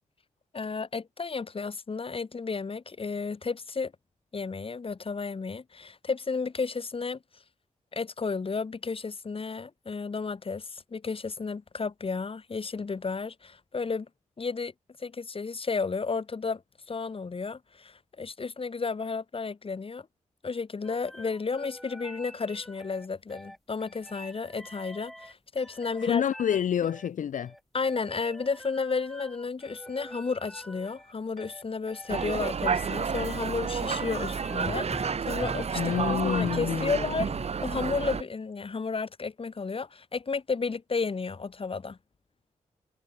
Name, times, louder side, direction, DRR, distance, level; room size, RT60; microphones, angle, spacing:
voice 1, 0.5-3.9 4.3-7.2 7.9-14.1 14.4-14.7 15.0-16.6 16.9-20.1 20.4-26.2 27.7-42.0, left 4 dB, 45° left, 1.4 m, -32 dB
sound 1, 20.8-36.6, equal, ahead, 1.9 m, -45 dB
voice 2, 26.0-27.5 35.7-37.1, left 9 dB, 70° left, 0.6 m, -28 dB
sound 2, 32.1-38.2, right 6 dB, 50° right, 0.8 m, -30 dB
cardioid pair, 55°, 14 cm